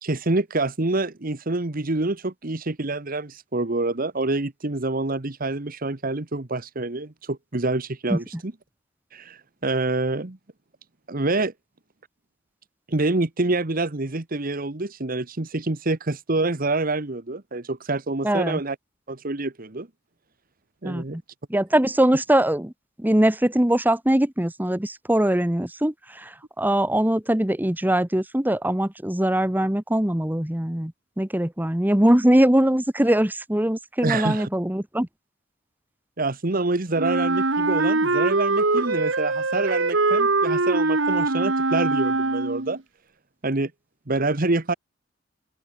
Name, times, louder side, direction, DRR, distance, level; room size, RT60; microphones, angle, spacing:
voice 1, 0.0-8.5 9.1-10.4 11.1-11.5 12.9-18.8 19.1-19.9 20.8-21.2 34.0-34.5 36.2-42.8 43.4-43.7 44.1-44.7, right 2 dB, 45° right, 1.3 m, -26 dB
voice 2, 18.2-18.6 20.8-21.0 21.5-22.7 23.0-35.1, right 1 dB, 10° right, 1.1 m, -22 dB
Wind instrument woodwind instrument, 37.0-42.8, right 3 dB, 70° right, 1.8 m, -22 dB
open air
head